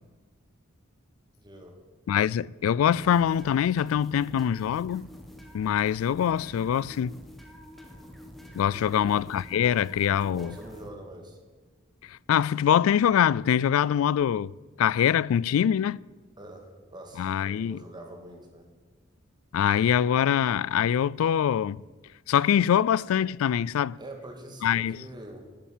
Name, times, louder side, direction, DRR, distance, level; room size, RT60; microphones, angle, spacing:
voice 1, 1.4-1.8 2.9-3.0 8.7-9.3 10.1-11.4 16.4-18.7 24.0-25.5, right 1 dB, 20° right, 1.9 m, -45 dB
voice 2, 2.1-5.1 5.5-7.2 8.5-10.5 12.1-14.5 14.8-16.0 17.2-17.8 19.5-21.8 22.3-24.0 24.6-25.0, left 9 dB, 85° left, 0.3 m, -24 dB
sound 1, 2.9-10.9, equal, ahead, 1.4 m, -47 dB
12.5 x 8.6 x 7.3 m
head